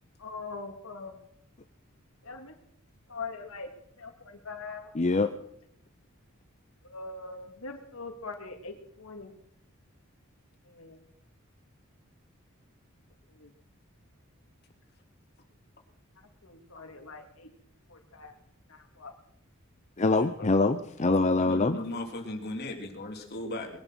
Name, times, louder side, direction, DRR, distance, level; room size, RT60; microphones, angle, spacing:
voice 1, 0.2-1.1 2.2-2.5 3.1-3.7 4.0-4.9 6.8-9.3 10.7-11.0 13.3-13.5 16.4-17.5 17.9-18.4 18.7-19.1, left 4 dB, 90° left, 4 dB, 2.8 m, -42 dB
voice 2, 4.9-5.3 20.0-21.8, left 3 dB, 35° left, 8 dB, 0.7 m, -24 dB
voice 3, 20.1-20.5 21.4-23.8, left 1 dB, 50° left, 2 dB, 3.3 m, -37 dB
21.0 x 11.0 x 6.2 m, 0.74 s
head